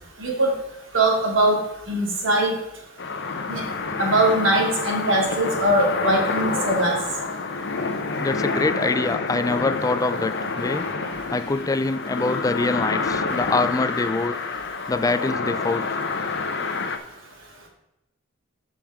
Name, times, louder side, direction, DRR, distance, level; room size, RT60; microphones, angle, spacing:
voice 1, 0.2-0.5 0.9-1.6 1.9-2.5 3.5-3.6 4.0-7.0, right 1 dB, 65° right, -1 dB, 2.4 m, -21 dB
sound 1, 3.0-17.0, left 4 dB, 55° left, 0.8 m, -28 dB
voice 2, 8.2-10.9 11.3-14.4 14.9-16.0, left 3 dB, 15° left, 13 dB, 0.3 m, -24 dB
11.5 x 5.4 x 3.6 m, 0.89 s
head